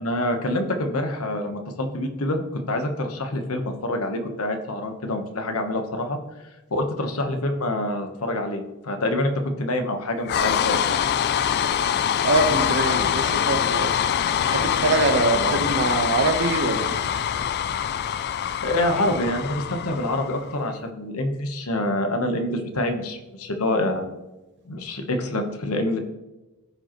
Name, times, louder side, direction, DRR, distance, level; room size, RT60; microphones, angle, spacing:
voice 1, 0.0-6.2 6.7-9.3 9.6-11.0 15.3-15.6 18.6-24.1 24.6-26.0, left 1 dB, 70° left, 5 dB, 1.1 m, -26 dB
sound 1, 10.3-20.5, left 9 dB, 45° left, 0.3 m, -24 dB
voice 2, 12.2-13.9 14.5-17.2, right 2 dB, 55° right, 6 dB, 1.0 m, -24 dB
14.0 x 4.9 x 3.0 m, 1.1 s
head